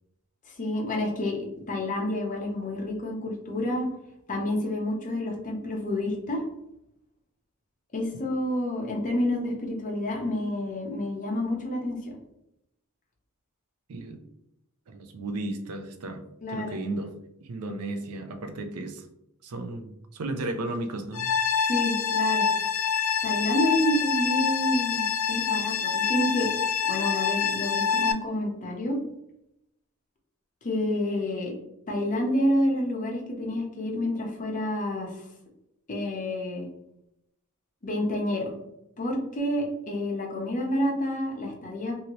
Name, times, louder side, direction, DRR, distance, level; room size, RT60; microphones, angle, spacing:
voice 1, 0.6-1.4 1.7-3.9 4.3-6.4 7.9-12.1 16.4-16.7 21.6-22.5 23.2-26.5 26.9-29.0 30.6-31.5 31.9-35.2 35.9-36.6 37.8-38.5 39.0-41.9, left 1 dB, 35° left, 0 dB, 0.7 m, -29 dB
voice 2, 13.9-14.2 14.9-19.1 19.4-21.3, right 2 dB, 85° right, 7 dB, 0.5 m, -34 dB
sound 1, 21.1-28.1, left 6 dB, 65° left, 0.4 m, -26 dB
2.8 x 2.7 x 2.9 m, 0.83 s
head